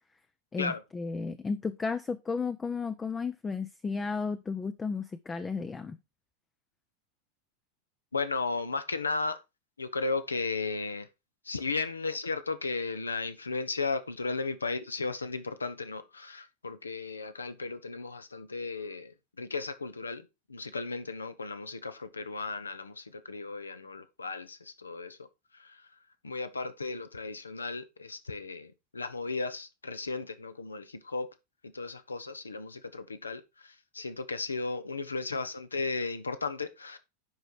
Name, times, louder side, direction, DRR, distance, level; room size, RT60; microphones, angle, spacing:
voice 1, 0.5-6.0, left 4 dB, 15° left, 0.5 m, -33 dB
voice 2, 8.1-9.4 9.8-11.1 11.4-25.3 25.5-25.9 26.2-31.3 31.6-37.0, left 3 dB, 75° left, 1.0 m, -35 dB
10.5 x 5.0 x 4.5 m
figure-of-eight pair, 90°, 0 cm